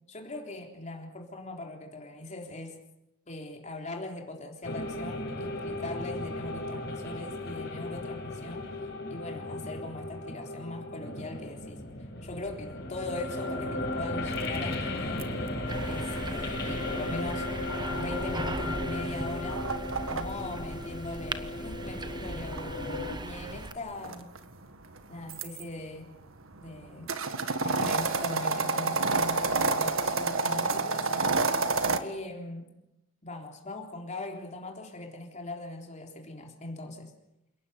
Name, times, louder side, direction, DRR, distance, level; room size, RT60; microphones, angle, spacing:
voice 1, 0.1-2.8 3.3-8.7 9.1-11.8 12.2-15.3 15.8-17.5 17.9-19.7 20.0-22.7 23.2-24.3 25.1-26.1 26.6-27.1 27.6-31.3 32.0-32.7 33.2-37.1, left 2 dB, 35° left, 2 dB, 3.7 m, -40 dB
sound 1, 4.6-23.2, left 2 dB, 60° left, 7.2 m, -35 dB
sound 2, 14.3-20.2 21.5-25.6 26.2-32.0, right 3 dB, 85° right, 1.8 m, -30 dB
sound 3, 15.7-23.7, right 2 dB, 20° right, 1.1 m, -39 dB
28.5 x 18.5 x 8.3 m, 0.88 s
head